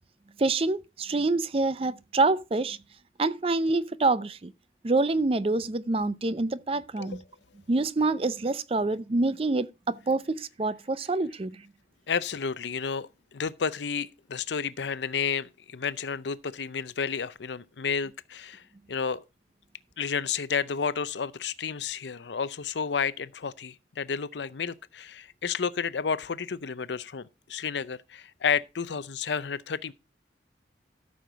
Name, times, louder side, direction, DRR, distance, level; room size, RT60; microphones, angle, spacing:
voice 1, 0.4-2.8 3.2-4.5 4.8-7.2 7.7-11.6, right 3 dB, 30° right, 0.5 m, -26 dB
voice 2, 12.1-18.6 18.9-19.2 20.0-29.9, left 6 dB, 85° left, 0.6 m, -31 dB
13.0 x 6.5 x 4.0 m
head